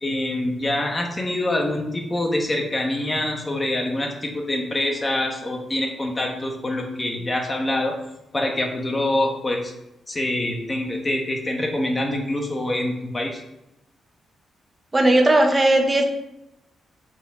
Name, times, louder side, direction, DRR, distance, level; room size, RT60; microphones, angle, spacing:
voice 1, 0.0-8.0 8.3-9.7 10.1-13.4, left 1 dB, 15° left, 1 dB, 1.2 m, -25 dB
voice 2, 14.9-16.0, right 1 dB, 15° right, 3 dB, 0.9 m, -17 dB
5.8 x 5.6 x 4.9 m, 0.87 s
wide cardioid pair, 170°, 0 cm